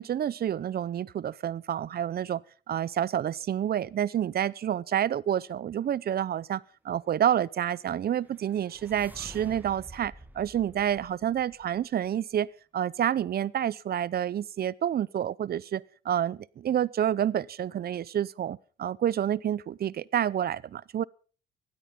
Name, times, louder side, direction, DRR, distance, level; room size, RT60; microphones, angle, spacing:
voice 1, 0.0-2.4 2.7-21.0, right 10 dB, 50° right, 0.6 m, -29 dB
sound 1, 8.0-12.1, right 1 dB, 10° right, 1.4 m, -50 dB
16.0 x 12.0 x 5.2 m
cardioid pair, 90°, 20 cm